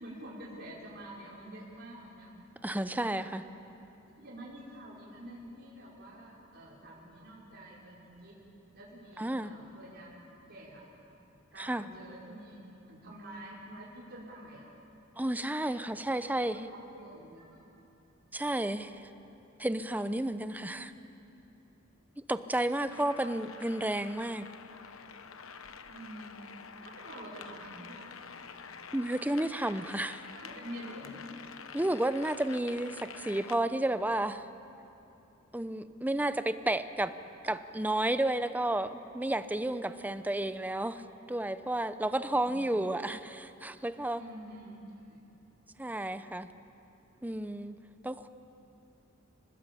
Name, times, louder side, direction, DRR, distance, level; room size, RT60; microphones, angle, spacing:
voice 1, 0.0-2.3 2.9-3.4 4.2-8.4 8.7-10.8 11.5-14.7 16.2-17.6 20.7-21.1 22.9-23.0 25.9-26.4 26.8-28.2 30.3-31.2 31.7-31.9 39.8-40.3 42.2-42.7 44.2-44.7 45.0-45.2, right 1 dB, 55° right, -6 dB, 5.4 m, -48 dB
voice 2, 2.6-3.4 9.2-9.5 11.6-11.9 15.2-16.7 18.3-18.9 19.6-20.9 22.3-24.5 28.9-30.2 31.7-34.4 35.5-37.1 37.4-41.0 41.3-44.2 45.8-46.5 47.2-47.8 48.0-48.3, right 1 dB, 10° right, 11 dB, 0.8 m, -32 dB
sound 1, 22.9-33.6, left 6 dB, 80° left, 1.1 m, -48 dB
29.0 x 20.5 x 8.5 m, 2.9 s
head